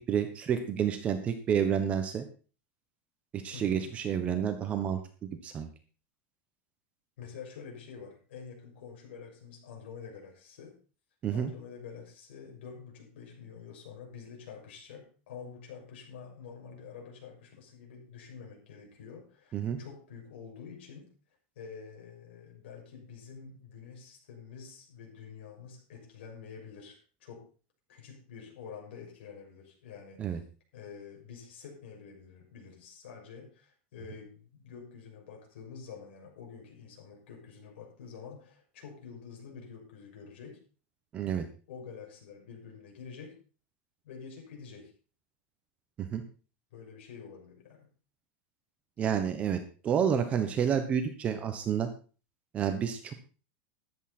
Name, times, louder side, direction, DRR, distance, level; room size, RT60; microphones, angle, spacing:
voice 1, 0.0-2.2 3.3-5.7 11.2-11.5 19.5-19.8 30.2-30.4 41.1-41.4 46.0-46.2 49.0-51.9 52.5-53.1, right 8 dB, 20° right, 7 dB, 1.1 m, -30 dB
voice 2, 3.5-3.9 7.2-10.7 11.3-21.1 21.5-27.5 27.9-30.4 30.7-40.6 41.7-43.4 44.0-44.9 46.7-47.9, left 6 dB, 75° left, 0 dB, 6.5 m, -47 dB
14.0 x 11.0 x 4.3 m, 0.37 s
supercardioid pair, 170°, 6 cm